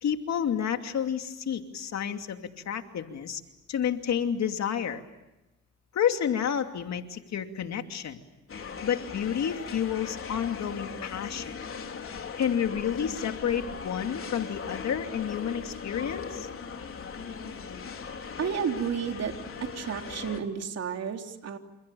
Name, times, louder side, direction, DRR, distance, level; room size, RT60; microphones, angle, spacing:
voice 1, 0.0-2.4 2.7-3.4 3.7-5.0 5.9-8.2 8.8-11.5 12.4-16.5, left 8 dB, 65° left, 6 dB, 2.8 m, -30 dB
sound 1, 8.5-20.4, left 5 dB, 45° left, 3.6 m, -39 dB
voice 2, 18.4-19.4 19.6-21.6, right 7 dB, 55° right, 4 dB, 3.5 m, -31 dB
30.0 x 28.0 x 7.0 m, 0.98 s
cardioid pair, 90°, 30 cm